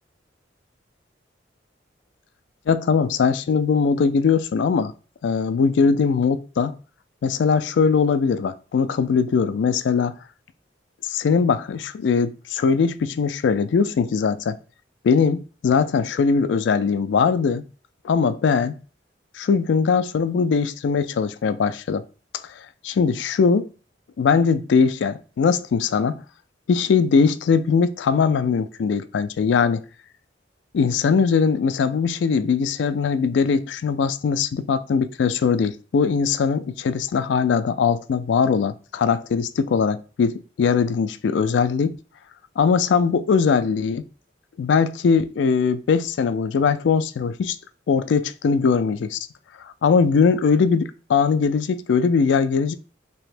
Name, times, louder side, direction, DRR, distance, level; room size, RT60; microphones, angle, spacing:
voice 1, 2.7-4.9 5.2-6.8 7.2-10.1 11.0-14.6 15.0-17.6 18.0-18.7 19.4-22.0 22.8-23.7 24.2-26.2 26.7-29.8 30.7-41.9 42.6-44.0 44.6-47.6 47.9-49.2 49.8-52.8, left 5 dB, 75° left, 0.3 m, -20 dB
3.4 x 2.9 x 3.2 m
head